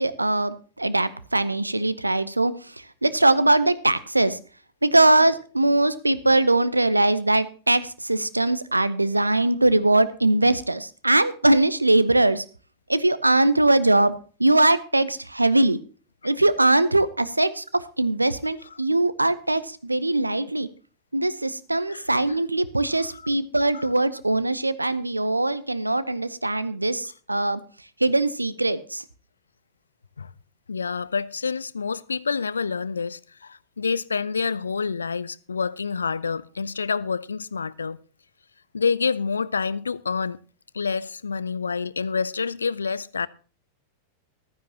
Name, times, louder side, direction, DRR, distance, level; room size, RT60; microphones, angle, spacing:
voice 1, 0.0-4.4 4.8-12.4 12.9-14.1 14.4-15.8 16.2-20.7 21.1-27.6 28.0-29.0, right 2 dB, 85° right, 0.7 m, -21 dB
voice 2, 30.7-38.0 38.7-40.4 40.7-43.3, left 5 dB, 75° left, 0.5 m, -28 dB
15.0 x 12.0 x 2.9 m
figure-of-eight pair, 90°, 0 cm